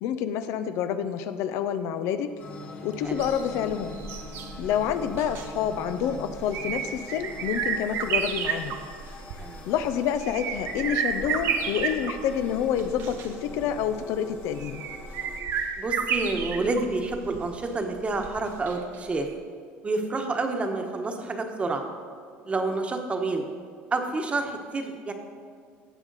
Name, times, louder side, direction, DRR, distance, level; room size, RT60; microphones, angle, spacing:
voice 1, 0.0-2.3 2.8-4.0 4.6-8.8 9.7-14.8, left 8 dB, 70° left, 10 dB, 0.6 m, -28 dB
sound 1, 2.4-15.4, left 3 dB, 40° left, 1.4 m, -44 dB
sound 2, 3.1-19.0 19.3-19.4, right 6 dB, 60° right, 1.0 m, -32 dB
voice 2, 9.4-9.7 15.8-19.3 19.8-21.9 22.5-23.4 23.9-25.1, right 3 dB, 25° right, 4 dB, 1.2 m, -29 dB
16.0 x 7.1 x 4.1 m, 2.1 s
cardioid pair, 115°, 5 cm